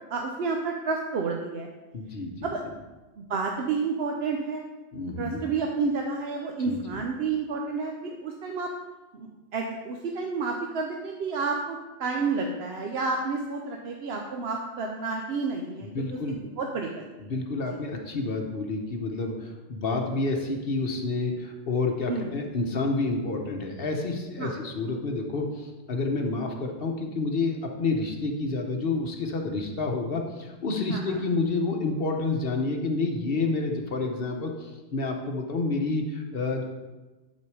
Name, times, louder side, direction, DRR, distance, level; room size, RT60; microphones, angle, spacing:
voice 1, 0.1-1.7 2.4-2.6 3.2-4.6 5.2-8.7 9.1-17.1 17.7-17.8 22.1-22.3 24.4-24.5 30.9-31.2, right 4 dB, 65° right, 2 dB, 0.9 m, -30 dB
voice 2, 1.9-2.5 4.9-5.4 6.6-7.0 15.8-16.4 17.2-36.6, left 3 dB, 60° left, 2 dB, 1.2 m, -29 dB
10.5 x 4.3 x 4.8 m, 1.2 s
omnidirectional pair, 1.1 m